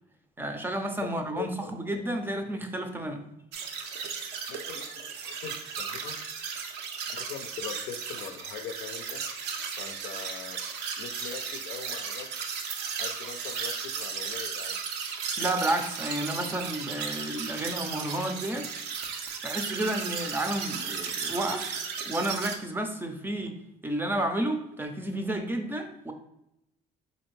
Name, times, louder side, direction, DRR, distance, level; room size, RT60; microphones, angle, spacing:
voice 1, 0.4-3.2 15.4-18.7 19.4-21.8 22.1-23.5 23.8-26.1, right 1 dB, 10° right, 5 dB, 0.4 m, -31 dB
voice 2, 1.3-1.7 4.5-6.2 7.1-9.2 9.8-10.6 11.0-12.4 13.0-14.8, left 8 dB, 85° left, 7 dB, 0.5 m, -41 dB
sound 1, 3.5-22.6, right 6 dB, 85° right, 0.5 m, -35 dB
4.1 x 2.5 x 3.1 m, 0.85 s
cardioid pair, 110°, 17 cm